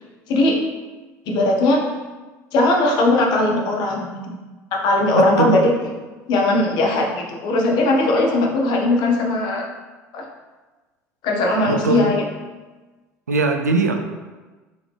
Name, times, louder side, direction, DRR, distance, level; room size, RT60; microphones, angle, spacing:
voice 1, 0.3-0.6 1.3-1.9 2.5-4.4 4.7-5.7 6.3-9.7 10.1-10.3 11.2-12.2, left 2 dB, 55° left, 0 dB, 0.8 m, -19 dB
voice 2, 5.1-5.6 11.7-12.1 13.3-14.0, right 3 dB, 90° right, 5 dB, 0.4 m, -20 dB
3.8 x 3.5 x 3.3 m, 1.2 s
hypercardioid pair, 65°, 9 cm